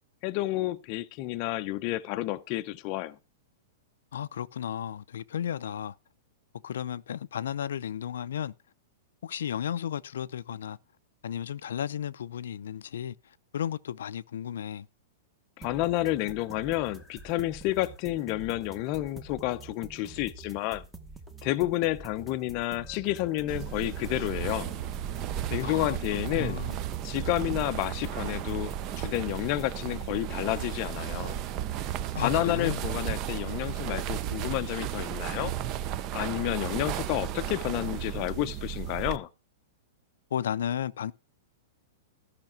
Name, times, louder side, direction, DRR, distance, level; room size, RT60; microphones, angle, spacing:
voice 1, 0.2-3.2 15.6-20.8 21.4-24.8 25.5-26.6 27.0-31.4 32.2-35.5 36.1-39.3, left 16 dB, 30° left, 0.6 m, -30 dB
voice 2, 4.1-6.0 6.6-8.5 9.2-10.8 11.2-14.9 25.6-26.8 32.1-32.8 40.3-41.1, left 9 dB, 85° left, 0.5 m, -34 dB
sound 1, 15.6-29.8, right 3 dB, 5° right, 0.9 m, -47 dB
sound 2, 23.5-39.2, right 11 dB, 25° right, 0.5 m, -34 dB
13.5 x 5.8 x 5.8 m
supercardioid pair, 180°, 0 cm